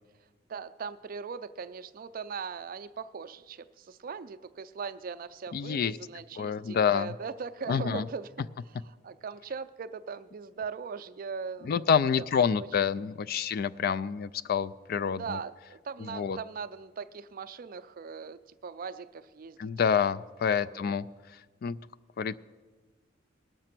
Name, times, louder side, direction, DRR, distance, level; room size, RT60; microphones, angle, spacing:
voice 1, 0.5-12.7 15.1-19.6 20.6-21.2, right 5 dB, 50° right, 11 dB, 0.4 m, -40 dB
voice 2, 5.5-6.0 6.4-7.1 7.7-8.0 11.6-15.4 16.1-16.4 19.6-21.1 21.6-21.8 22.2-22.4, left 7 dB, 50° left, 17 dB, 0.3 m, -27 dB
19.0 x 6.6 x 6.0 m, 1.4 s
head